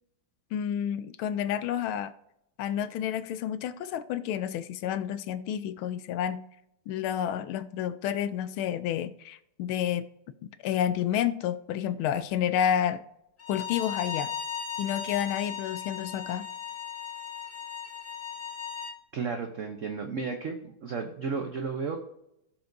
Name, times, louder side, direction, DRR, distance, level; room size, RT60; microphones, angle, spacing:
voice 1, 0.5-2.1 2.6-6.5 6.9-10.1 10.6-13.0 13.5-14.3 14.8-16.5, left 10 dB, 80° left, 1.3 m, -30 dB
Bowed string instrument, 13.4-19.0, left 8 dB, 50° left, 0.4 m, -37 dB
voice 2, 19.1-22.0, right 5 dB, 85° right, 0.6 m, -33 dB
17.0 x 5.9 x 2.6 m
omnidirectional pair, 2.4 m